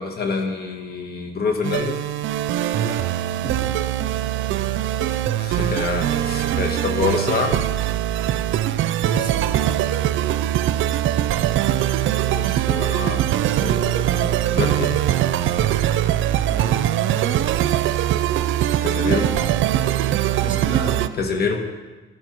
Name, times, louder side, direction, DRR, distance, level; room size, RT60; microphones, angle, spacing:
voice 1, 0.0-2.0 5.4-7.6 12.3-13.3 13.6-15.0 18.8-19.2 21.2-21.6, left 4 dB, 55° left, 3 dB, 1.6 m, -26 dB
sound 1, 1.6-21.1, right 12 dB, 75° right, 0.5 m, -22 dB
voice 2, 2.7-3.8 9.0-9.6 16.5-16.7 19.0-19.3 20.4-21.2, right 3 dB, 25° right, -1 dB, 3.3 m, -30 dB
12.0 x 12.0 x 4.5 m, 1.2 s
cardioid pair, 90°, 20 cm